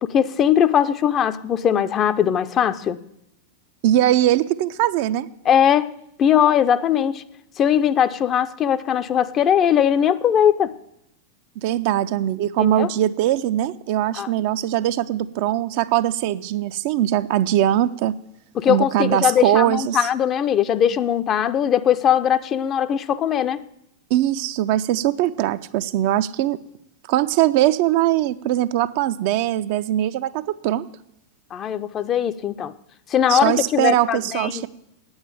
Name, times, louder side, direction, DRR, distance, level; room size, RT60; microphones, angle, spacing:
voice 1, 0.0-3.0 5.4-7.2 7.6-10.7 12.6-12.9 14.1-14.3 18.6-23.6 31.5-32.7 33.1-34.7, left 9 dB, 30° left, 12 dB, 0.6 m, -20 dB
voice 2, 3.8-5.3 11.6-18.1 18.7-20.1 24.1-26.6 27.1-30.9 33.3-34.7, right 13 dB, 50° right, 11 dB, 0.5 m, -21 dB
8.8 x 8.8 x 9.2 m, 0.78 s
figure-of-eight pair, 90°, 0 cm